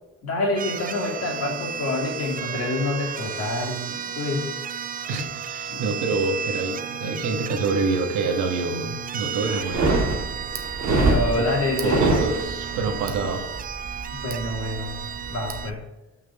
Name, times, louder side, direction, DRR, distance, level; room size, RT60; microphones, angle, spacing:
voice 1, 0.2-4.5 5.7-5.8 9.4-9.6 10.9-12.0 14.1-15.0 15.3-15.8, left 2 dB, 50° left, -1 dB, 2.7 m, -27 dB
sound 1, 0.6-15.7, right 8 dB, 30° right, 0.4 m, -33 dB
voice 2, 5.1-10.1 11.4-11.5 11.8-13.6, right 3 dB, 90° right, 4 dB, 1.5 m, -26 dB
sound 2, 9.6-12.8, right 2 dB, 65° right, 2.3 m, -23 dB
Tick, 9.7-15.7, right 4 dB, 45° right, 1.2 m, -39 dB
6.4 x 6.0 x 4.7 m, 1.0 s
cardioid pair, 90°, 30 cm